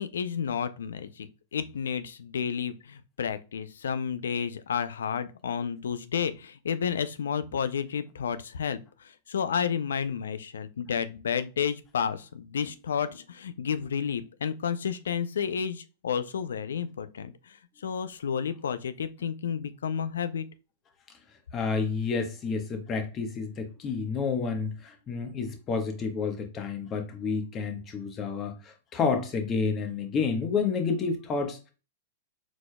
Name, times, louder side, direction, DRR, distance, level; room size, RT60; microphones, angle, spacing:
voice 1, 0.0-17.6 17.8-20.5, left 7 dB, 80° left, 0.5 m, -31 dB
voice 2, 21.5-31.7, left 5 dB, 30° left, 1.1 m, -30 dB
4.8 x 3.9 x 2.2 m
hypercardioid pair, 110°, 0 cm